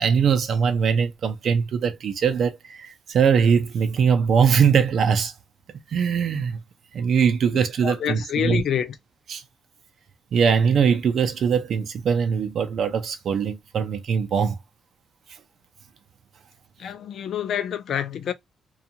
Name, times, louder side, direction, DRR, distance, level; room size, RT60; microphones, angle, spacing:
voice 1, 0.0-5.3 5.9-6.6 6.9-8.6 9.3-9.4 10.3-14.6, right 6 dB, 55° right, 0.5 m, -21 dB
voice 2, 7.8-9.0 16.8-18.3, left 9 dB, 60° left, 0.4 m, -27 dB
2.5 x 2.3 x 2.8 m
cardioid pair, 155°, 0 cm